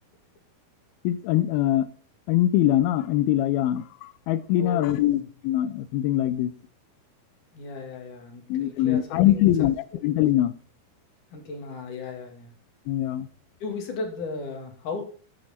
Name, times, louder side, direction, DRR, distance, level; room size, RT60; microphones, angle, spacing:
voice 1, 1.0-1.9 2.3-6.5 8.5-9.8 10.0-10.5 12.9-13.3, left 13 dB, 80° left, 2.4 m, -23 dB
voice 2, 4.5-5.3 7.5-9.7 11.3-12.5 13.6-15.0, left 3 dB, 55° left, 3.4 m, -36 dB
12.5 x 8.8 x 4.2 m
omnidirectional pair, 4.5 m